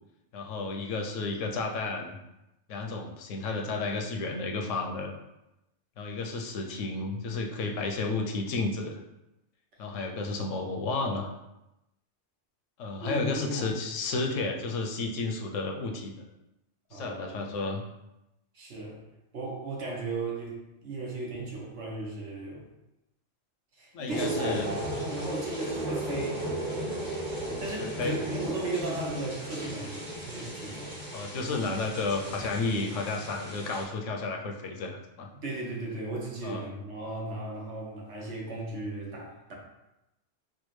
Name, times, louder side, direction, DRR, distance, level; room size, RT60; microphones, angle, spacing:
voice 1, 0.3-2.2 2.7-5.1 6.0-9.0 9.8-11.3 12.8-16.1 16.9-17.8 23.9-24.8 27.8-28.2 31.1-35.3 36.4-36.7, left 3 dB, 80° left, 2 dB, 0.9 m, -32 dB
voice 2, 13.0-13.8 16.9-17.5 18.5-19.0 19.3-22.7 23.8-26.4 27.6-30.9 35.4-39.5, right 2 dB, 65° right, -2 dB, 1.2 m, -35 dB
sound 1, 24.1-33.8, right 1 dB, 35° right, 1.5 m, -36 dB
4.7 x 2.2 x 3.1 m, 0.91 s
omnidirectional pair, 1.3 m